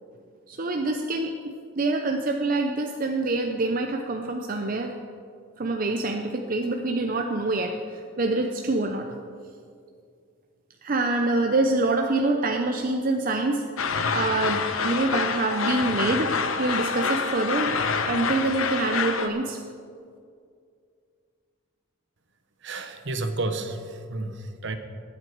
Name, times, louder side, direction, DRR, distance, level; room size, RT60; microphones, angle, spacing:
voice 1, 0.5-1.4 1.8-4.9 5.6-9.2 10.8-13.6 14.1-19.6, right 2 dB, 40° right, 3 dB, 0.6 m, -26 dB
sound 1, 13.8-19.3, left 5 dB, 75° left, 0.8 m, -27 dB
voice 2, 22.6-24.8, right 2 dB, 60° right, 8 dB, 1.0 m, -31 dB
20.0 x 7.9 x 4.6 m, 2.3 s
head